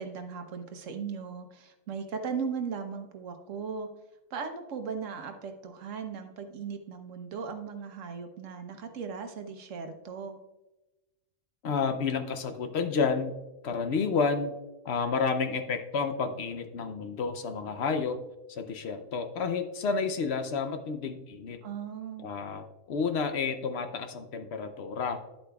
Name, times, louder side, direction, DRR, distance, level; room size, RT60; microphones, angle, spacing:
voice 1, 0.0-3.9 4.3-10.4 21.6-22.3, right 6 dB, 75° right, 6 dB, 1.2 m, -37 dB
voice 2, 11.6-13.4 13.6-14.6 14.8-18.2 18.5-21.6 22.2-25.2, left 5 dB, 60° left, 8 dB, 0.8 m, -30 dB
10.0 x 8.3 x 2.3 m, 1.0 s
omnidirectional pair, 1.3 m